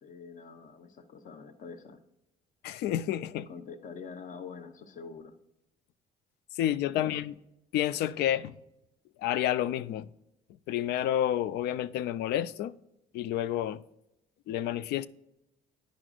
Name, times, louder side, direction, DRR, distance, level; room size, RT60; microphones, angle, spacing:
voice 1, 0.0-2.0 3.3-5.4 6.9-7.2, left 5 dB, 50° left, 0.9 m, -45 dB
voice 2, 2.6-3.5 6.5-7.3 7.7-8.6 9.2-10.1 10.7-12.7 13.1-13.8 14.5-15.1, left 11 dB, 75° left, 0.4 m, -29 dB
10.5 x 5.0 x 2.4 m
cardioid pair, 110°, 17 cm